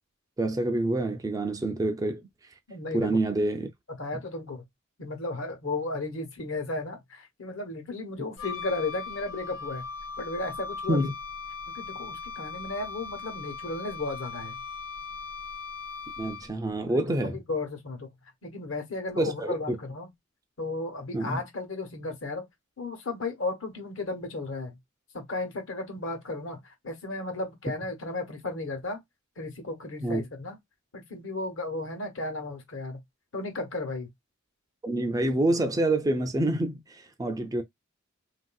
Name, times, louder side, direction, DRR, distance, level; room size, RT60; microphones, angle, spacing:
voice 1, 0.4-2.5 2.9-3.7 10.9-11.1 16.2-17.4 19.2-19.8 21.1-21.4 30.0-30.2 34.8-37.6, right 1 dB, 15° right, 0.3 m, -27 dB
voice 2, 2.7-3.1 4.0-4.6 5.0-9.8 10.2-11.1 11.7-14.6 16.9-18.1 18.4-20.1 20.6-22.5 22.8-24.8 25.1-29.0 29.4-30.6 30.9-33.0 33.3-34.1, left 2 dB, 70° left, 1.0 m, -34 dB
Wind instrument woodwind instrument, 8.4-16.7, left 5 dB, 85° left, 0.6 m, -39 dB
3.3 x 2.6 x 2.2 m
head